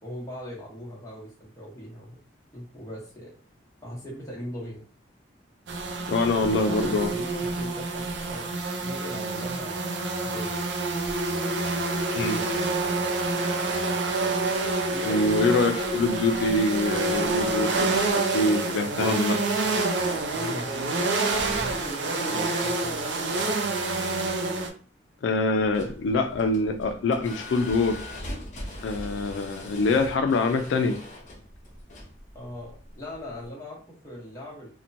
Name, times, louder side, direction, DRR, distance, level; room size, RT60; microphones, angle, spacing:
voice 1, 0.0-2.2 2.5-3.3 3.8-4.8 6.1-6.3 6.6-7.3 7.6-8.5 8.8-10.6 14.9-15.4 20.3-23.1 32.3-34.7, equal, 15° left, 0.9 m, -40 dB
sound 1, 5.7-24.7, right 3 dB, 70° right, 0.5 m, -27 dB
voice 2, 6.1-7.1 12.1-12.5 15.0-19.4 22.3-22.5 25.2-28.0 28.8-31.0, left 3 dB, 80° left, 0.3 m, -25 dB
sound 2, 25.6-33.5, left 1 dB, 40° left, 0.7 m, -41 dB
2.9 x 2.1 x 2.5 m
head